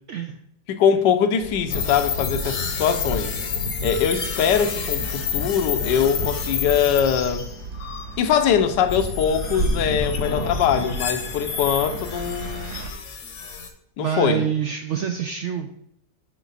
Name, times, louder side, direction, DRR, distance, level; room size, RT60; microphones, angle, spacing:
voice 1, 0.7-3.3 3.8-7.5 8.2-12.7 14.0-14.5, left 8 dB, 80° left, 1.3 m, -22 dB
sound 1, 1.4-12.9, right 3 dB, 70° right, 1.3 m, -34 dB
sound 2, 1.7-13.7, left 5 dB, 50° left, 1.0 m, -29 dB
voice 2, 14.0-15.7, right 9 dB, 85° right, 0.6 m, -26 dB
9.2 x 4.5 x 4.0 m
omnidirectional pair, 1.9 m